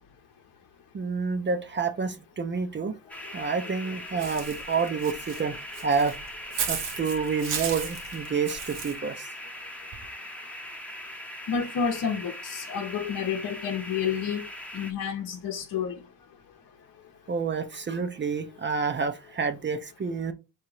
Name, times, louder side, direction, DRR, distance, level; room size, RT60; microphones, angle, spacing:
voice 1, 0.9-2.9 3.3-5.6 5.8-9.3 17.3-20.3, right 5 dB, 30° right, 0.6 m, -29 dB
sound 1, 3.1-14.9, left 1 dB, 5° left, 0.8 m, -40 dB
Walk footsteps / Bird, 4.2-9.0, right 7 dB, 90° right, 1.0 m, -35 dB
voice 2, 11.5-14.5 14.7-16.0, left 7 dB, 55° left, 0.9 m, -30 dB
3.7 x 2.9 x 4.7 m
cardioid pair, 80°, 39 cm